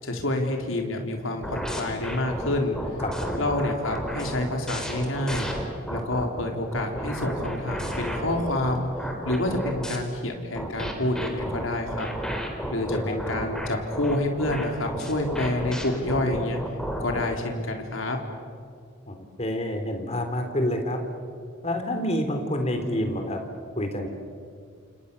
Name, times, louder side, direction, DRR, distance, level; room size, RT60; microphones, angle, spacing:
voice 1, 0.0-2.8 3.3-5.5 5.9-8.9 9.2-12.1 12.7-16.6 17.0-18.2, left 1 dB, 85° left, 2 dB, 3.7 m, -28 dB
sound 1, 1.4-6.2 6.7-10.0 10.6-17.3, equal, 5° left, 3.8 m, -32 dB
voice 2, 3.0-3.5 12.8-13.2 19.1-21.0 21.6-23.4 23.8-24.1, left 1 dB, 35° left, 5 dB, 3.7 m, -28 dB
29.0 x 28.0 x 6.9 m, 2.2 s
head